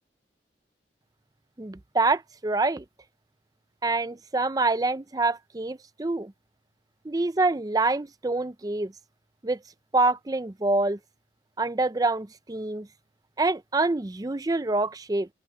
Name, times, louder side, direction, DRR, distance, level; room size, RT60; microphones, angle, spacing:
voice 1, 1.6-2.8 3.8-6.3 7.0-8.9 9.4-9.6 9.9-11.0 11.6-12.9 13.4-15.3, right 2 dB, 20° right, 0.5 m, -26 dB
open air
head